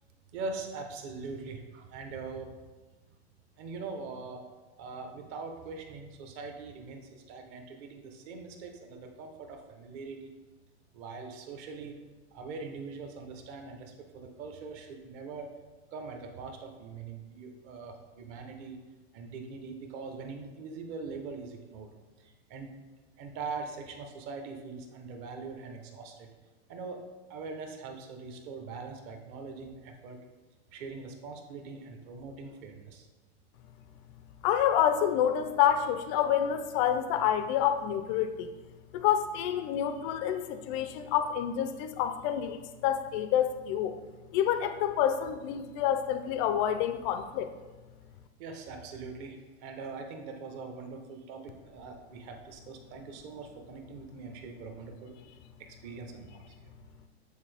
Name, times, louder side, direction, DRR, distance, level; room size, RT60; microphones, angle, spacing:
voice 1, 0.3-2.5 3.6-4.4 4.8-10.3 10.9-12.0 12.3-15.5 15.9-18.8 19.1-21.9 22.5-22.7 23.2-26.3 26.7-27.0 27.3-30.2 30.7-33.0 48.4-49.4 49.6-55.1 55.8-56.5, right 4 dB, 40° right, 4 dB, 0.9 m, -42 dB
voice 2, 34.4-38.5 38.9-44.0 44.3-47.5, left 10 dB, 30° left, 9 dB, 0.4 m, -28 dB
8.4 x 4.0 x 3.4 m, 1.2 s
supercardioid pair, 145°, 34 cm